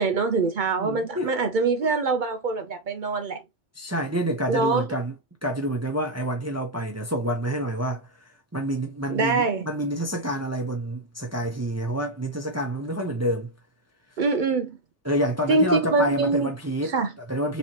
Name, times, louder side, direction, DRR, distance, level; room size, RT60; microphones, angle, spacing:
voice 1, 0.0-3.4 4.5-4.9 9.1-9.6 14.2-14.8 15.5-16.5 16.8-17.1, right 3 dB, 65° right, 0.5 m, -24 dB
voice 2, 0.7-1.3 3.8-5.1 5.4-8.1 8.5-13.5 15.0-17.0 17.3-17.6, right 1 dB, 15° right, 0.6 m, -28 dB
4.0 x 3.0 x 2.8 m
omnidirectional pair, 1.3 m